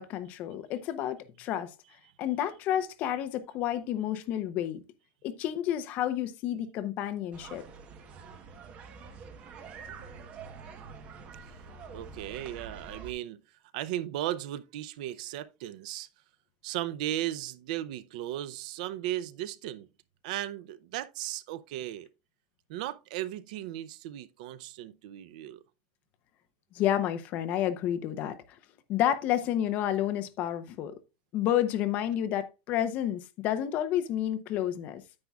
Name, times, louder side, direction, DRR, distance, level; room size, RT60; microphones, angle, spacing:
voice 1, 0.0-1.7 2.2-4.8 5.2-7.6 26.7-28.4 28.9-30.9 31.3-35.0, left 11 dB, 40° left, 0.7 m, -30 dB
sound 1, 7.3-13.1, right 5 dB, 30° right, 1.0 m, -46 dB
voice 2, 11.9-13.4 13.7-16.1 16.6-19.9 20.2-22.1 22.7-25.6, right 13 dB, 70° right, 0.5 m, -36 dB
9.6 x 8.3 x 2.3 m
supercardioid pair, 170°, 4 cm